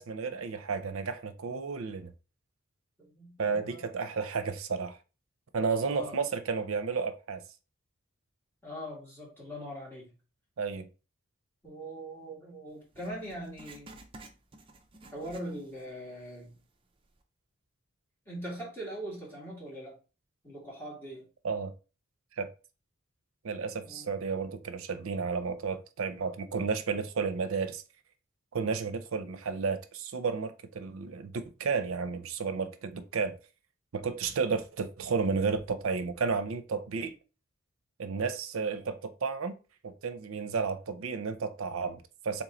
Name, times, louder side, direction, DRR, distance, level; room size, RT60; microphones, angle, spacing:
voice 1, 0.0-2.1 3.4-5.0 5.5-7.4 10.6-10.9 21.4-21.7 22.4-22.5 23.4-27.8 28.5-31.3 31.6-33.4 33.9-37.1 38.0-39.6 39.8-42.4, right 5 dB, 75° right, 0.5 m, -32 dB
voice 2, 3.0-4.0 5.8-6.2 8.6-10.1 11.6-13.9 15.1-16.6 18.2-20.0 20.4-21.3 23.8-24.1, equal, 10° left, 1.8 m, -41 dB
Writing, 12.9-15.9 16.2-16.3 17.0-17.1, right 2 dB, 25° right, 0.4 m, -52 dB
3.6 x 3.0 x 3.8 m
head